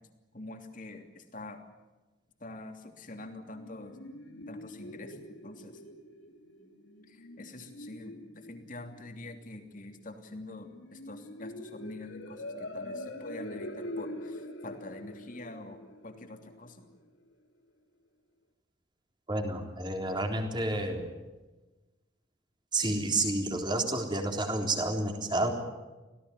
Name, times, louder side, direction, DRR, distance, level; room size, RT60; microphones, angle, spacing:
voice 1, 0.3-1.6 2.4-4.0 4.5-5.8 7.0-16.9, left 2 dB, 45° left, 5 dB, 3.1 m, -45 dB
sound 1, 3.4-17.0, left 1 dB, 85° left, 3.6 m, -44 dB
voice 2, 19.3-21.1 22.7-25.5, right 2 dB, 25° right, 4 dB, 3.6 m, -30 dB
25.5 x 17.5 x 9.5 m, 1.2 s
head